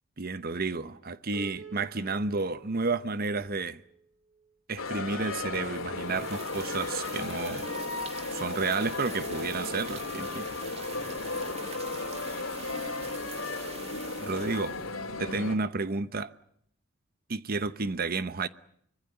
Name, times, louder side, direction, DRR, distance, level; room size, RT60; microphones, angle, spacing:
voice 1, 0.2-3.8 4.7-7.7 8.3-10.5 14.2-14.8 15.2-16.3 17.3-18.5, right 3 dB, 45° right, 0.9 m, -31 dB
Piano, 1.3-4.6, right 5 dB, 70° right, 4.3 m, -51 dB
sound 1, 4.8-15.6, left 3 dB, 70° left, 3.1 m, -35 dB
sound 2, 6.1-15.1, right 6 dB, 30° right, 2.2 m, -45 dB
25.0 x 22.5 x 7.9 m
head